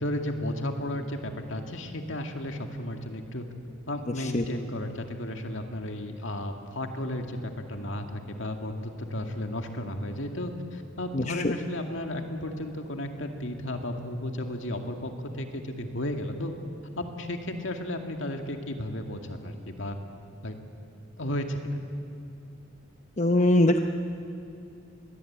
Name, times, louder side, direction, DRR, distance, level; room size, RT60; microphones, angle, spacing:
voice 1, 0.0-3.5 3.9-16.5 17.0-20.0 20.4-20.6 21.2-21.6, left 1 dB, 65° left, 4 dB, 2.3 m, -33 dB
voice 2, 11.1-11.5 23.2-23.8, left 1 dB, 35° left, 6 dB, 0.8 m, -22 dB
26.5 x 21.0 x 8.7 m, 2.7 s
head